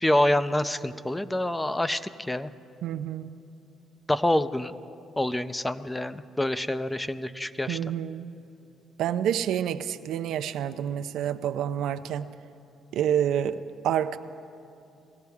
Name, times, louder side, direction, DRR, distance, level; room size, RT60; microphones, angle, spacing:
voice 1, 0.0-2.5 4.1-4.7 5.2-7.8, left 1 dB, 10° left, 12 dB, 0.5 m, -26 dB
voice 2, 2.8-3.3 7.7-8.3 9.0-12.3 12.9-14.2, right 10 dB, 85° right, 9 dB, 0.5 m, -28 dB
22.0 x 16.0 x 3.5 m, 2.7 s
cardioid pair, 90°, 0 cm